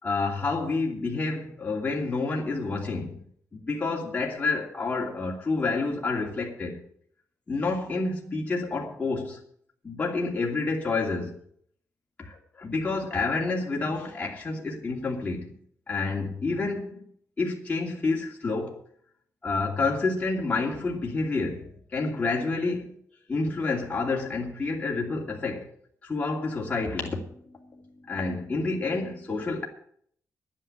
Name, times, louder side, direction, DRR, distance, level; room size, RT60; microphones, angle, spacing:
voice 1, 0.0-3.2 3.5-6.8 7.5-9.4 9.8-11.4 12.3-15.5 15.9-17.0 17.4-18.8 19.4-21.7 21.9-22.9 23.3-25.7 26.0-27.3 28.1-29.7, left 3 dB, 25° left, 2.7 m, -29 dB
10.5 x 9.8 x 8.8 m
wide cardioid pair, 175°, 6 cm